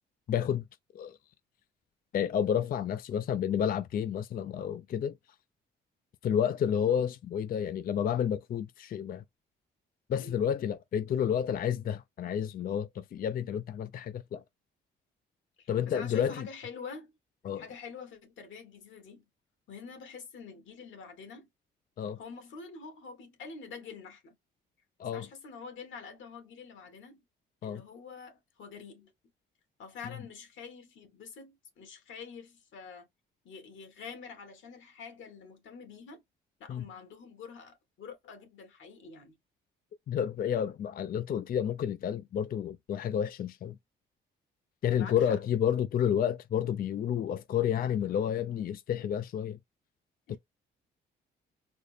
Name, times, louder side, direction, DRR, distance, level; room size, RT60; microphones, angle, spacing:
voice 1, 0.3-0.6 0.9-1.2 2.1-5.1 6.2-9.2 10.1-14.4 15.7-16.5 17.4-17.6 22.0-22.2 25.0-25.3 27.6-27.8 36.7-36.8 40.1-43.7 44.8-49.6, left 9 dB, 50° left, 0.4 m, -30 dB
voice 2, 15.6-17.1 17.6-19.2 19.7-21.5 22.2-24.3 25.1-27.2 27.6-29.1 29.8-33.1 33.4-36.2 36.6-39.4 44.9-45.4 50.3-50.4, left 5 dB, 75° left, 2.0 m, -46 dB
4.1 x 2.0 x 3.3 m
cardioid pair, 90°, 20 cm